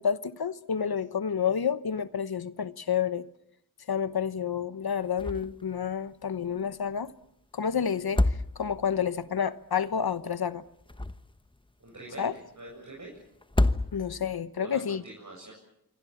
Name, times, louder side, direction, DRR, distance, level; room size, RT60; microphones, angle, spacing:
voice 1, 0.0-3.3 3.9-7.1 7.5-10.6 12.2-12.3 13.9-15.0, left 7 dB, 70° left, 1.1 m, -29 dB
sound 1, 5.2-5.7 6.0-6.1 7.9-9.0 10.7-11.6 13.4-14.4, left 2 dB, 15° left, 1.1 m, -28 dB
voice 2, 11.8-13.1 14.6-15.5, right 2 dB, 50° right, 7.9 m, -44 dB
26.0 x 24.5 x 7.3 m
cardioid pair, 55°, 38 cm